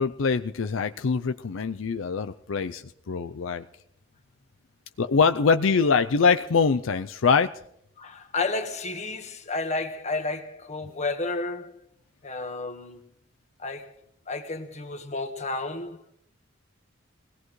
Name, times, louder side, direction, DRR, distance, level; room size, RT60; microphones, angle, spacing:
voice 1, 0.0-3.7 5.0-7.5, left 5 dB, 75° left, 0.5 m, -23 dB
voice 2, 8.0-11.8 12.2-13.1 13.6-13.9 14.3-16.0, left 3 dB, 35° left, 1.5 m, -31 dB
22.5 x 17.5 x 3.2 m
head